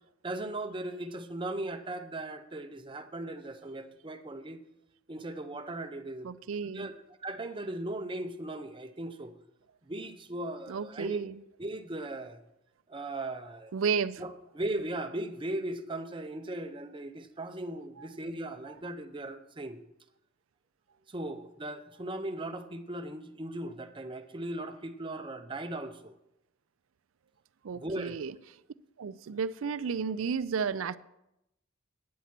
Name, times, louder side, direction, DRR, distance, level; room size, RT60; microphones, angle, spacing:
voice 1, 0.2-4.6 5.1-6.4 6.7-9.3 9.9-11.2 11.6-12.4 12.9-13.7 14.2-19.8 21.1-26.2 27.7-28.2, right 1 dB, 25° right, 0.7 m, -38 dB
voice 2, 6.2-6.9 10.7-11.4 13.7-14.2 27.6-28.3 29.0-31.0, right 6 dB, 85° right, 0.4 m, -32 dB
9.5 x 8.0 x 5.9 m
head